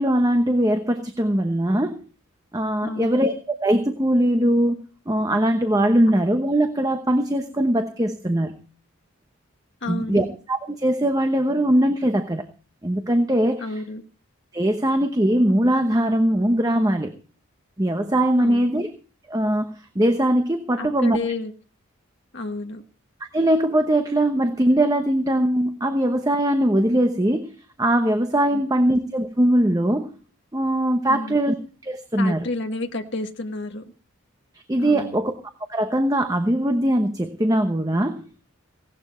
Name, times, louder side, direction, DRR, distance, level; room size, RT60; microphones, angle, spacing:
voice 1, 0.0-2.0 2.5-8.6 9.9-12.4 12.8-13.7 14.5-17.1 17.8-18.9 19.3-21.2 23.2-30.1 30.5-31.5 31.8-32.5 34.7-35.3 35.7-38.2, right 1 dB, 15° right, 6 dB, 0.9 m, -21 dB
voice 2, 2.8-3.2 9.8-10.3 13.6-14.0 18.4-18.8 20.8-21.5 22.3-22.8 28.5-28.6 31.1-31.3 32.2-33.9 34.8-35.2, left 2 dB, 55° left, 4 dB, 1.5 m, -31 dB
17.0 x 12.0 x 4.3 m, 0.38 s
head